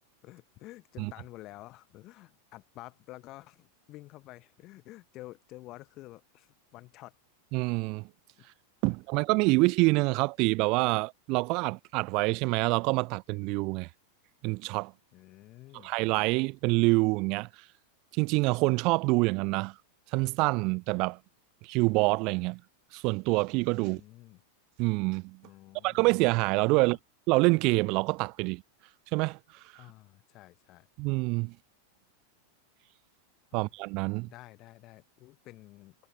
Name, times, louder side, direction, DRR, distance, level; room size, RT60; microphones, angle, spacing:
voice 1, 0.2-7.2 8.4-8.5 15.1-15.9 23.8-24.4 25.4-26.0 26.8-27.0 29.7-30.9 33.5-33.6 34.2-35.9, left 18 dB, 40° left, 3.3 m, -50 dB
voice 2, 7.5-8.1 8.8-13.9 14.4-14.9 15.8-17.5 18.1-19.7 20.1-21.2 21.6-22.6 22.9-24.0 24.8-25.4 25.8-27.0 27.3-28.6 29.1-29.4 29.7-29.8 31.0-31.5 33.5-34.3, right 26 dB, 40° right, 0.9 m, -26 dB
figure-of-eight pair, 90°, 0 cm